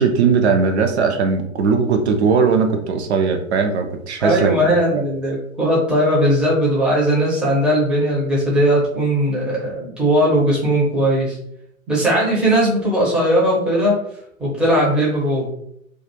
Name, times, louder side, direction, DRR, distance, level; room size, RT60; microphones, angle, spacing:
voice 1, 0.0-4.6 4.9-5.0, right 5 dB, 55° right, 4 dB, 0.5 m, -18 dB
voice 2, 4.2-11.4 11.9-14.0 14.4-15.5, equal, ahead, -6 dB, 0.5 m, -18 dB
2.3 x 2.3 x 2.8 m, 0.74 s
figure-of-eight pair, 105°, 40 cm